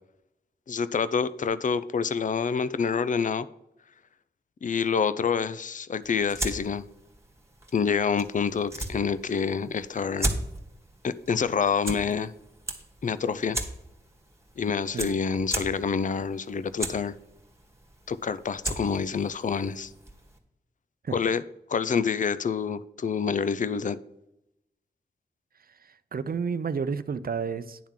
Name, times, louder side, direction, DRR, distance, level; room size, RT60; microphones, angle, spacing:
voice 1, 0.7-3.5 4.6-6.8 7.7-10.3 11.0-12.3 13.0-13.6 14.6-17.1 18.1-19.9 21.1-21.4 21.7-24.0, left 6 dB, 50° left, 15 dB, 0.5 m, -27 dB
sound 1, 6.0-20.4, right 1 dB, 15° right, 1.7 m, -37 dB
voice 2, 25.7-27.8, right 5 dB, 60° right, 13 dB, 0.6 m, -31 dB
10.0 x 3.6 x 7.3 m, 0.86 s
cardioid pair, 60°, 17 cm